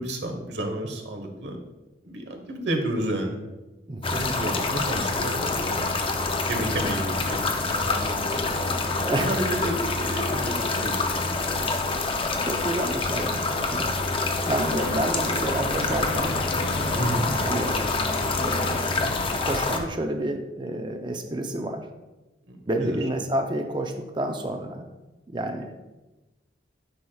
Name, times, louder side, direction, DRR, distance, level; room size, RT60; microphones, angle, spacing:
voice 1, 0.0-1.6 2.0-3.4 4.1-5.9 6.5-11.4 13.7-14.3 17.0-17.3 22.5-23.0, right 1 dB, 75° right, 3 dB, 1.2 m, -31 dB
voice 2, 3.9-4.3 9.0-9.4 12.4-14.0 14.4-16.4 16.8-17.8 18.4-19.1 19.4-21.9 22.7-24.9 25.3-25.8, right 1 dB, 25° right, 5 dB, 0.6 m, -30 dB
sound 1, 4.0-19.8, left 3 dB, 30° left, 0.5 m, -26 dB
sound 2, 14.7-19.9, left 2 dB, 80° left, 0.7 m, -34 dB
9.5 x 5.8 x 2.3 m, 1.1 s
head